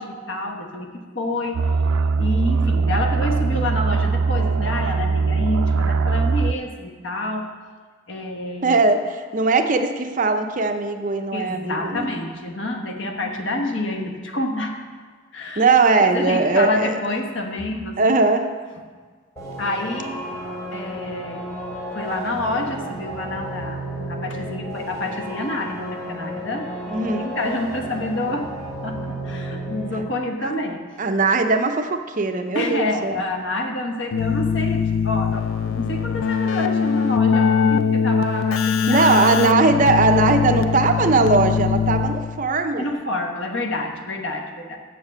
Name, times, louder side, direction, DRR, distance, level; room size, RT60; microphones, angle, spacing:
voice 1, 0.0-1.8 2.2-7.5 8.1-8.8 11.3-14.8 15.3-15.7 16.0-18.0 19.6-20.2 20.7-21.4 21.9-26.7 27.2-28.5 28.8-30.8 32.5-39.1 40.1-40.2 42.8-44.8, left 2 dB, 60° left, 3 dB, 1.2 m, -28 dB
sound 1, 1.5-6.5, right 4 dB, 90° right, 0.3 m, -21 dB
voice 2, 8.6-12.1 15.6-17.0 18.0-18.5 26.9-27.4 30.4-30.5 31.0-33.2 38.9-42.9, right 3 dB, 40° right, 6 dB, 0.6 m, -19 dB
sound 2, 19.4-30.0, right 1 dB, 15° left, 2.9 m, -32 dB
Keyboard (musical), 34.1-42.5, left 6 dB, 80° left, 0.4 m, -21 dB
7.2 x 7.0 x 7.3 m, 1.5 s
head